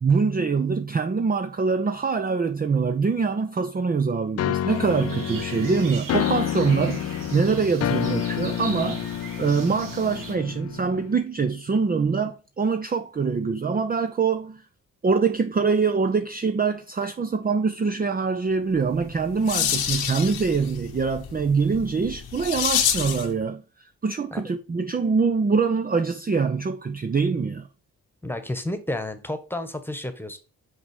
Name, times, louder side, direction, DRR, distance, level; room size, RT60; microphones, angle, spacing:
voice 1, 0.0-14.6 15.0-27.7, right 5 dB, 25° right, 0.6 m, -24 dB
sound 1, 4.4-11.2, left 11 dB, 40° left, 0.4 m, -29 dB
sound 2, 4.7-10.3, right 4 dB, 55° right, 1.9 m, -39 dB
sound 3, 18.9-23.3, left 9 dB, 70° left, 1.0 m, -28 dB
voice 2, 28.2-30.4, left 1 dB, 5° left, 1.4 m, -31 dB
5.6 x 4.2 x 4.9 m
hypercardioid pair, 40°, 39 cm